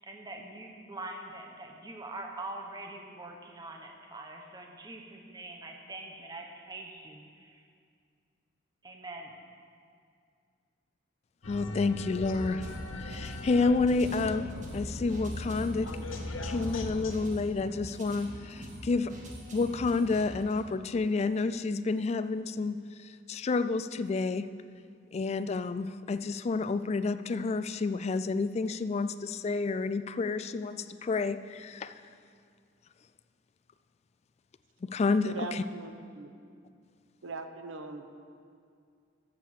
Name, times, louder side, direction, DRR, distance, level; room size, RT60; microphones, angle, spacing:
voice 1, 0.1-7.6 8.8-9.4, right 2 dB, 20° right, 2 dB, 0.9 m, -44 dB
sound 1, 11.4-17.1, left 2 dB, 90° left, 0.8 m, -39 dB
voice 2, 11.5-15.9 16.4-19.1 19.5-24.5 25.1-31.9 34.8-35.6, left 3 dB, 35° left, 12 dB, 0.3 m, -30 dB
sound 2, 12.6-20.6, equal, 40° right, 1.6 m, -45 dB
voice 3, 35.2-36.3 37.2-38.1, right 3 dB, 85° right, 7 dB, 0.8 m, -40 dB
13.5 x 7.4 x 4.9 m, 2.3 s
head